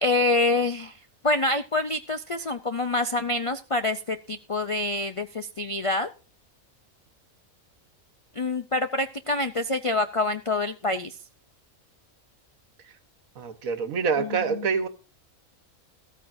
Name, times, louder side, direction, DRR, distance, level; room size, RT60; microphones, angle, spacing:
voice 1, 0.0-6.1 8.3-11.2 14.2-14.7, left 2 dB, 60° left, 0.3 m, -26 dB
voice 2, 13.4-14.9, right 6 dB, 85° right, 1.6 m, -26 dB
14.0 x 13.5 x 2.6 m
omnidirectional pair, 1.4 m